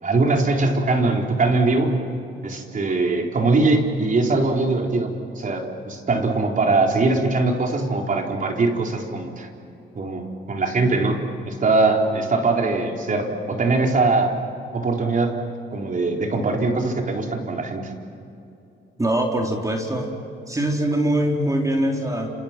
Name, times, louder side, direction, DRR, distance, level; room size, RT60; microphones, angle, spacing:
voice 1, 0.0-2.0 2.4-9.5 9.9-11.2 11.5-14.3 14.7-15.4 15.7-17.8, right 3 dB, 40° right, 1 dB, 4.2 m, -21 dB
voice 2, 19.0-20.1 20.5-22.3, right 1 dB, 15° right, 1 dB, 3.9 m, -22 dB
30.0 x 28.0 x 6.1 m, 2.6 s
cardioid pair, 90°, 20 cm